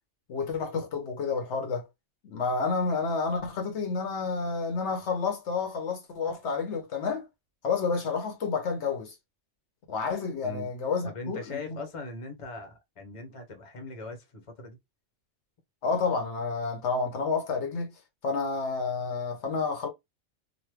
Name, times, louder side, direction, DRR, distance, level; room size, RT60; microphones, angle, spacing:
voice 1, 0.3-1.8 2.2-7.2 7.6-9.1 9.9-11.8 15.8-17.9 18.2-19.9, left 4 dB, 70° left, 1.0 m, -30 dB
voice 2, 11.0-14.8, left 3 dB, 30° left, 0.8 m, -40 dB
3.1 x 2.2 x 3.2 m
omnidirectional pair, 1.3 m